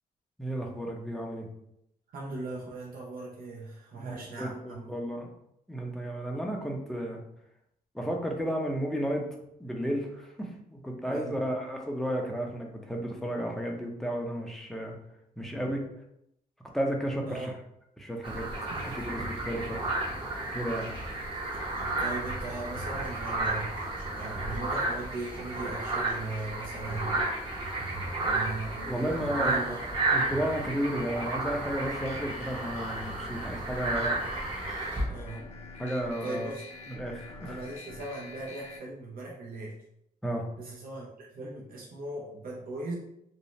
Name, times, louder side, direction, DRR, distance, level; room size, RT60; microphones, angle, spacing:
voice 1, 0.4-1.5 3.9-5.3 5.7-7.2 7.9-9.3 9.6-15.0 15.4-15.8 16.7-17.5 18.0-19.8 20.5-20.9 28.9-29.7 30.1-34.2 35.8-36.5 36.9-37.6 40.2-40.4, equal, ahead, 0 dB, 0.6 m, -33 dB
voice 2, 2.1-4.9 6.3-6.5 11.1-11.4 15.4-15.7 17.3-17.5 22.0-23.7 24.1-27.4 28.2-29.8 35.1-35.4 36.2-36.6 37.4-39.7 40.6-42.9, right 2 dB, 65° right, -3 dB, 0.6 m, -38 dB
sound 1, 18.2-35.0, right 2 dB, 30° right, 0.8 m, -32 dB
sound 2, 31.6-38.8, left 3 dB, 45° left, 0.7 m, -47 dB
2.6 x 2.0 x 3.0 m, 0.78 s
cardioid pair, 85°, 16 cm